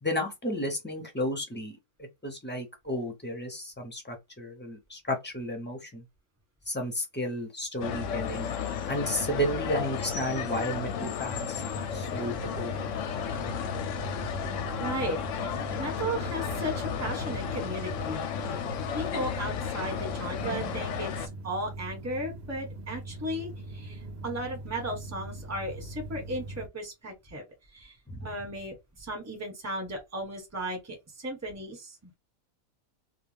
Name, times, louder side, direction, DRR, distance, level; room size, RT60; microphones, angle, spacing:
voice 1, 0.0-1.8 2.2-6.0 6.7-8.5 8.8-12.7 28.1-28.3, equal, 15° left, 0.4 m, -33 dB
sound 1, 7.8-21.3, left 7 dB, 70° left, 0.8 m, -33 dB
sound 2, 11.5-26.7, right 2 dB, 65° right, 0.7 m, -41 dB
voice 2, 14.8-18.3 18.9-27.4 27.7-27.9 28.2-32.1, right 1 dB, 10° right, 1.0 m, -36 dB
2.4 x 2.2 x 3.3 m
omnidirectional pair, 1.6 m